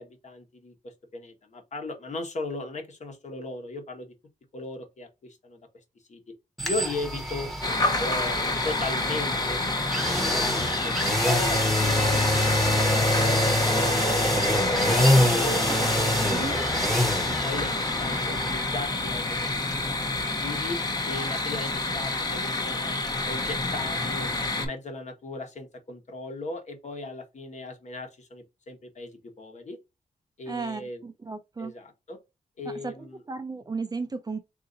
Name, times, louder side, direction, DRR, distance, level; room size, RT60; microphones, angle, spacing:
voice 1, 0.0-4.1 4.5-5.6 6.1-6.2 6.6-7.5 8.0-9.6 10.0-15.0 15.3-17.0 17.4-19.5 19.9-20.8 21.0-23.0 23.2-24.3 24.6-29.8 30.4-31.0 31.6-32.2 32.6-33.2, left 2 dB, 50° left, 1.2 m, -37 dB
sound 1, 6.6-22.4 22.7-22.8, left 1 dB, ahead, 0.9 m, -27 dB
sound 2, 7.6-24.7, left 2 dB, 25° left, 0.8 m, -28 dB
voice 2, 15.8-16.9 30.5-31.7 32.8-32.9 33.3-34.4, right 4 dB, 25° right, 0.5 m, -35 dB
3.9 x 2.7 x 3.9 m
wide cardioid pair, 165°, 15 cm